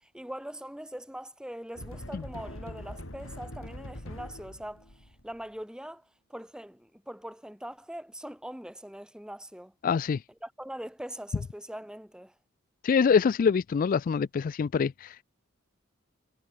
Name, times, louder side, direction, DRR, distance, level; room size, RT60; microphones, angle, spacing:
voice 1, 0.1-4.9 5.2-9.7 10.4-12.3, equal, 5° right, 1.8 m, -42 dB
sound 1, 1.8-5.4, left 1 dB, 90° left, 5.8 m, -43 dB
voice 2, 9.8-10.2 12.8-15.2, left 6 dB, 45° left, 0.3 m, -25 dB
head